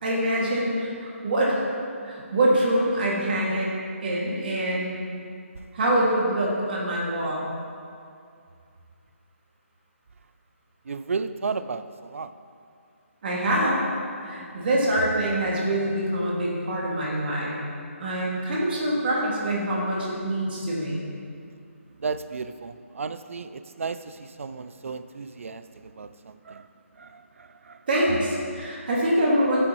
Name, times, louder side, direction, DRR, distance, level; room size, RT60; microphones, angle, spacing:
voice 1, 0.0-1.5 2.0-3.7 4.0-5.0 5.7-7.5 13.2-13.8 14.2-17.6 18.0-21.0 27.9-29.6, right 1 dB, 45° right, -4 dB, 2.3 m, -25 dB
voice 2, 10.9-12.3 22.0-26.7 27.0-27.8, right 4 dB, 70° right, 12 dB, 0.5 m, -34 dB
14.5 x 7.8 x 3.1 m, 2.4 s
hypercardioid pair, 160°, 8 cm